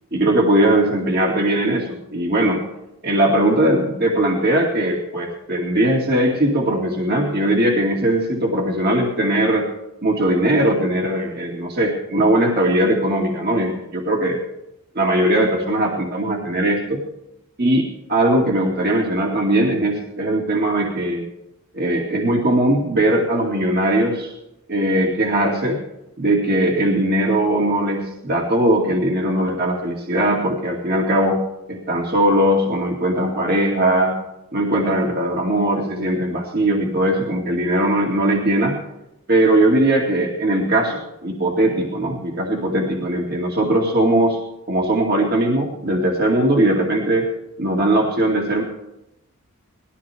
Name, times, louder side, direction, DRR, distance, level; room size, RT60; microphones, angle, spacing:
voice 1, 0.1-2.6 3.0-9.7 10.0-14.4 14.9-17.0 17.6-21.3 21.7-24.3 24.7-25.8 26.2-31.4 31.7-34.2 34.5-38.8 39.3-44.4 44.7-47.3 47.6-48.6, right 1 dB, 45° right, -1 dB, 2.3 m, -19 dB
19.5 x 14.0 x 3.5 m, 0.87 s
head